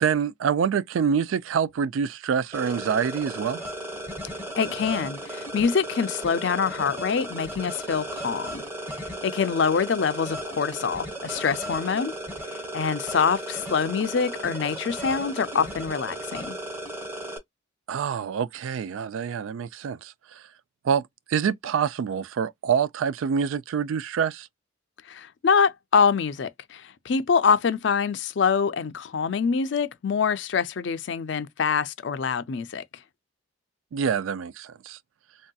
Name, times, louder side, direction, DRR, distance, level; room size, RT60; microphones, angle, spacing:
voice 1, 0.0-3.6 17.9-20.4 20.8-21.0 21.3-24.5 33.9-35.0, right 7 dB, 85° right, 0.3 m, -26 dB
sound 1, 2.5-17.4, right 1 dB, 10° right, 0.9 m, -35 dB
voice 2, 4.6-8.6 9.0-12.1 12.5-16.6 25.1-32.8, left 6 dB, 65° left, 0.4 m, -25 dB
3.2 x 2.7 x 2.2 m
head